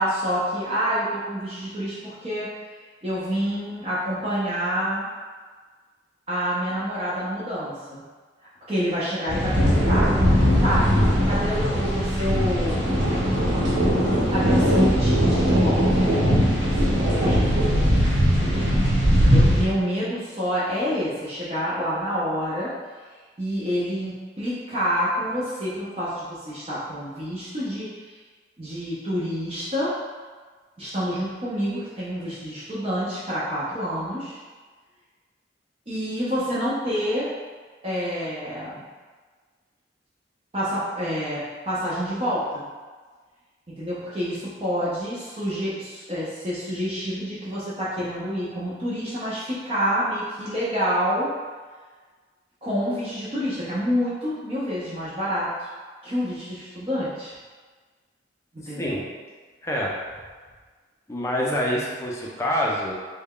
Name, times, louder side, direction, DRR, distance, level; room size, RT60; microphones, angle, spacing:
voice 1, 0.0-2.5 3.0-5.1 6.3-8.0 8.7-10.1 10.6-12.9 14.3-16.1 16.5-17.5 19.1-22.7 23.4-28.1 28.6-30.0 30.8-34.4 35.9-37.3 37.8-38.8 40.5-42.6 43.7-51.3 52.6-55.7 56.0-57.3 58.5-59.0, equal, 30° right, -10 dB, 0.6 m, -28 dB
sound 1, 9.3-19.6, equal, 80° right, 1.2 m, -20 dB
voice 2, 58.6-59.0 59.6-59.9 61.1-62.9, equal, 15° left, -4 dB, 0.5 m, -26 dB
3.3 x 2.2 x 3.6 m, 1.5 s
head